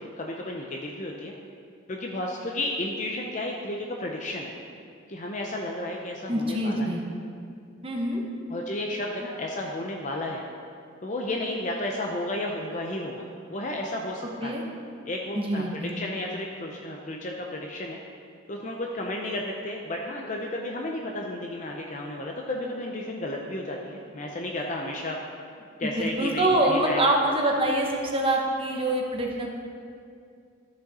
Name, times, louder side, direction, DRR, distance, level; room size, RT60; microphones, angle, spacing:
voice 1, 0.0-1.3 1.9-4.5 5.1-6.9 8.5-10.4 11.0-14.5 15.1-18.0 18.5-25.2 25.8-27.1, left 1 dB, 35° left, 0 dB, 0.6 m, -32 dB
voice 2, 6.3-7.0 7.8-8.2 14.4-14.6 15.3-15.9 25.8-29.5, right 1 dB, 25° right, 0 dB, 1.0 m, -25 dB
13.0 x 6.3 x 4.2 m, 2.3 s
head